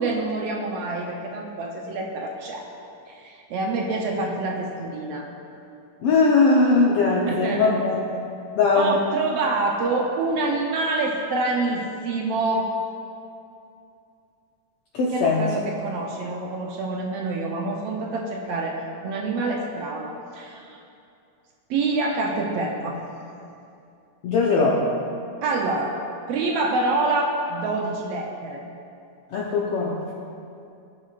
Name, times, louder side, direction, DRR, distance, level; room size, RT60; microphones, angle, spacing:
voice 1, 0.0-2.7 3.1-5.3 7.3-7.8 8.7-12.7 15.1-20.8 21.7-23.0 25.4-25.9 26.3-28.6, right 3 dB, 80° right, 0 dB, 1.5 m, -26 dB
voice 2, 6.0-8.2 8.6-8.9 14.9-15.5 24.2-24.9 29.3-30.0, left 3 dB, 75° left, -4 dB, 1.4 m, -20 dB
17.0 x 6.4 x 2.4 m, 2.6 s
omnidirectional pair, 3.5 m